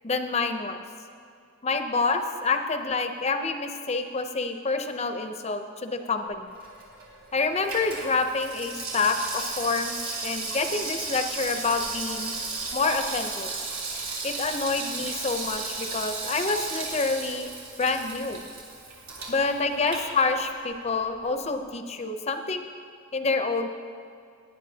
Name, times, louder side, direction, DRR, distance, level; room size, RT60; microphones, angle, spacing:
voice 1, 0.0-0.8 1.6-6.5 7.3-10.0 10.2-12.3 12.7-13.5 14.2-17.5 17.8-18.4 19.3-22.7 23.1-23.7, left 4 dB, 30° left, 7 dB, 0.6 m, -27 dB
Water tap faucet / Sink (filling or washing), 6.5-20.8 21.1-21.2, right 3 dB, 75° right, 3.1 m, -35 dB
17.5 x 9.9 x 2.8 m, 2.4 s
head